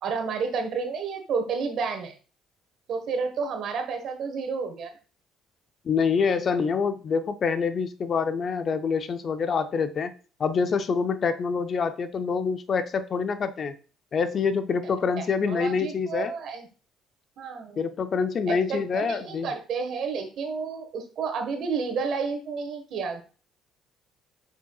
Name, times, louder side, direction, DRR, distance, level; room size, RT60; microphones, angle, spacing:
voice 1, 0.0-2.2 2.9-4.9 14.8-14.9 15.2-16.7 17.4-17.8 18.5-23.2, right 5 dB, 65° right, 1.4 m, -31 dB
voice 2, 5.8-10.1 10.4-13.8 14.1-16.3 17.8-19.5, left 5 dB, 45° left, 0.5 m, -26 dB
7.4 x 5.6 x 2.4 m
cardioid pair, 90°, 0 cm